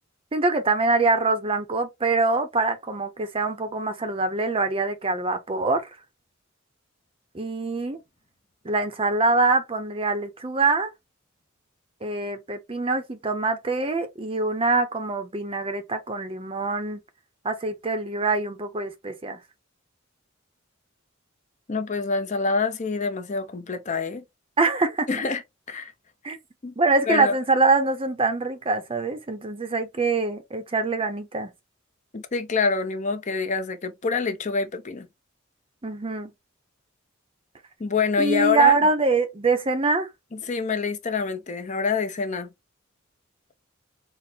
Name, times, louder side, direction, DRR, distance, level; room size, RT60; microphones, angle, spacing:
voice 1, 0.3-5.9 7.3-8.0 8.6-10.9 12.0-17.0 17.4-19.4 24.6-25.1 26.2-26.4 26.8-31.5 35.8-36.3 38.2-40.1, right 3 dB, 30° right, 0.6 m, -24 dB
voice 2, 21.7-24.2 25.1-25.4 25.7-25.9 26.6-26.7 27.1-27.3 32.1-35.1 37.8-38.7 40.3-42.5, left 4 dB, 35° left, 0.6 m, -26 dB
4.2 x 2.1 x 3.5 m
head